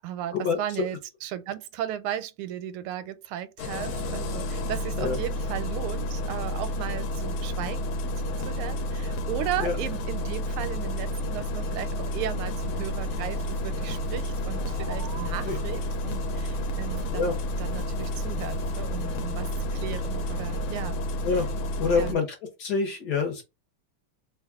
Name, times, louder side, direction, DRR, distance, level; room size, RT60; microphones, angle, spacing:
voice 1, 0.0-17.3 17.6-21.0 21.8-22.2, right 11 dB, 85° right, 1.5 m, -36 dB
Engine starting, 3.6-22.1, left 1 dB, 80° left, 1.5 m, -30 dB
sound 1, 12.4-20.9, right 1 dB, 50° right, 0.8 m, -41 dB
voice 2, 21.8-22.3 22.6-23.4, left 5 dB, 60° left, 1.3 m, -26 dB
3.4 x 2.3 x 3.5 m
omnidirectional pair, 2.3 m